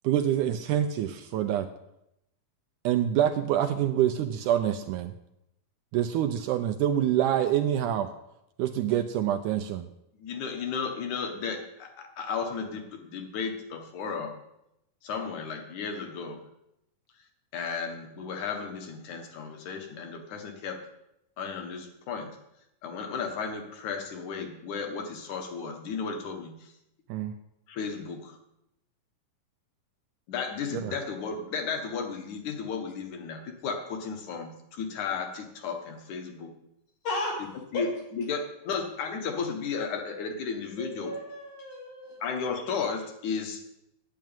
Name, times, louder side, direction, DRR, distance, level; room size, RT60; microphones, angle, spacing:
voice 1, 0.0-1.7 2.8-5.1 5.9-8.1 8.6-9.9 27.1-27.3 30.7-30.9, right 11 dB, 80° right, 7 dB, 1.9 m, -26 dB
voice 2, 10.2-14.4 15.0-16.4 17.5-20.8 21.4-22.3 22.8-26.7 27.7-28.4 30.3-36.5 37.4-41.2 42.2-43.7, left 5 dB, 65° left, 4 dB, 2.7 m, -34 dB
voice 3, 37.0-37.4 37.7-37.8 40.8-42.2, left 2 dB, 80° left, -3 dB, 5.3 m, -34 dB
9.3 x 7.5 x 9.0 m, 0.83 s
omnidirectional pair, 4.0 m